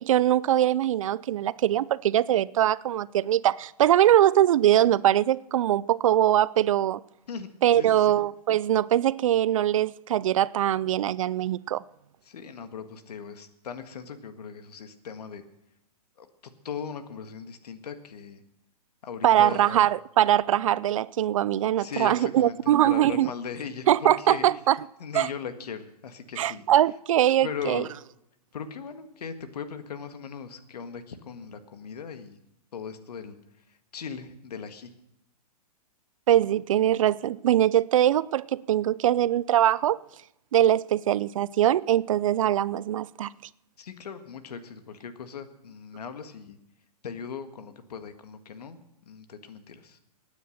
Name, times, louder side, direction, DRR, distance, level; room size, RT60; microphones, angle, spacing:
voice 1, 0.0-7.0 7.6-11.8 19.2-23.3 23.9-24.8 25.1-25.3 26.4-27.8 36.3-40.0 40.5-43.3, right 12 dB, 55° right, 0.4 m, -22 dB
voice 2, 7.3-8.1 12.2-15.4 16.2-16.3 16.6-18.4 19.0-19.9 21.7-24.5 25.0-26.6 27.4-27.9 28.5-32.4 32.7-33.4 33.7-34.9 43.8-46.6 47.0-48.8 49.0-50.0, left 6 dB, 75° left, 1.7 m, -38 dB
16.5 x 9.5 x 6.5 m
hypercardioid pair, 155°, 20 cm